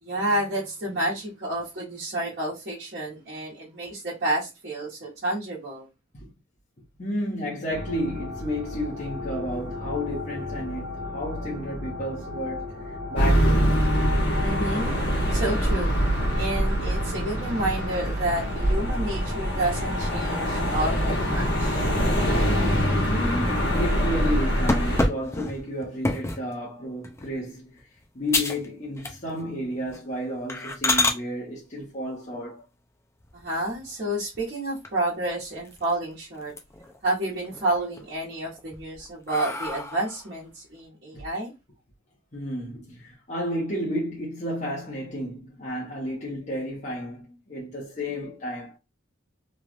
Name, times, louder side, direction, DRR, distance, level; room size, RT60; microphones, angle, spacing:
voice 1, 0.0-5.9 14.4-15.0 15.3-15.9 16.3-21.9 33.3-36.5 37.0-41.5, right 1 dB, 55° right, 1.3 m, -30 dB
voice 2, 7.0-12.8 13.1-13.8 23.0-27.8 28.1-32.6 41.1-41.2 42.3-48.8, equal, 40° left, 0.9 m, -32 dB
sound 1, 7.7-22.9, left 1 dB, 30° right, 1.1 m, -35 dB
sound 2, 13.2-25.1, equal, 60° left, 1.3 m, -24 dB
sound 3, 24.7-26.5 27.0-27.4 27.8-27.9 28.3-28.7 29.0-29.5 29.8-30.0 30.5-31.2 33.2-33.9 34.3-34.4 34.8-34.9 35.2-36.0 36.4-37.0 37.4-38.0 38.6-40.3, left 2 dB, 15° left, 0.4 m, -28 dB
3.1 x 2.4 x 2.4 m
head